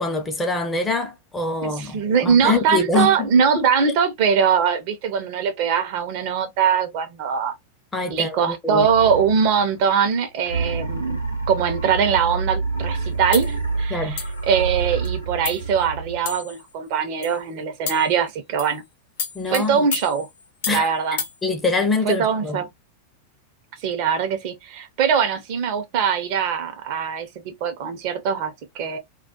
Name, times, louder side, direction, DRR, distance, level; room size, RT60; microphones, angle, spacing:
voice 1, 0.0-3.3 3.6-3.7 7.9-8.9 13.9-14.2 19.3-19.9 20.7-20.9 21.4-22.6, left 3 dB, 15° left, 0.6 m, -24 dB
voice 2, 1.6-7.5 8.1-11.2 11.5-18.8 19.5-20.3 20.7-21.2 22.1-22.7 23.8-29.0, right 7 dB, 45° right, 0.6 m, -22 dB
sound 1, 8.8-9.9 10.4-16.4, right 4 dB, 85° right, 0.6 m, -28 dB
sound 2, 13.3-13.5 14.2-14.4 15.0-15.1 15.4-15.7 16.3-16.6 17.2-17.4 17.9-18.1 18.6-18.8 19.2-20.9 21.2-21.4, left 7 dB, 55° left, 0.7 m, -31 dB
2.3 x 2.1 x 2.7 m
figure-of-eight pair, 90°, 0 cm